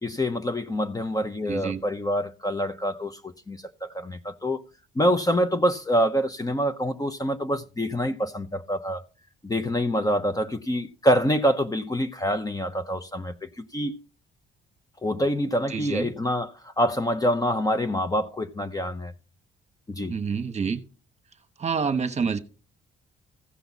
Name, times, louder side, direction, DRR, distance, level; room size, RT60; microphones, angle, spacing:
voice 1, 0.0-4.7 4.9-9.0 9.4-14.0 15.0-19.1 19.9-20.1, equal, 20° left, 0.8 m, -26 dB
voice 2, 1.5-1.8 15.7-16.1 20.1-20.8 21.6-22.4, right 5 dB, 35° right, 1.1 m, -27 dB
15.5 x 5.8 x 4.1 m
cardioid pair, 90°, 20 cm